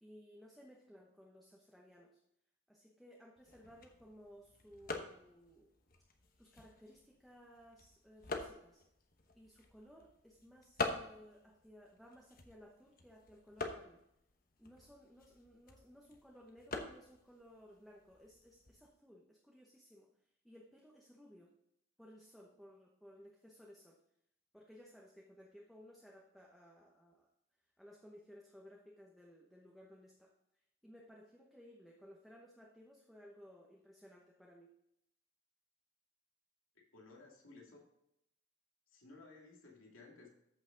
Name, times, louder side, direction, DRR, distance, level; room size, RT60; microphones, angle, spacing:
voice 1, 0.0-2.2 2.7-5.7 6.4-8.8 9.3-14.0 14.6-20.1 20.4-21.5 22.0-24.0 24.5-27.3 27.8-30.3 30.8-34.7, equal, ahead, -2 dB, 1.0 m, -59 dB
sound 1, 3.4-18.9, left 3 dB, 45° left, 1.1 m, -47 dB
voice 2, 36.9-37.9 38.9-40.3, left 3 dB, 80° left, -1 dB, 2.5 m, -57 dB
14.0 x 5.8 x 3.9 m, 0.77 s
head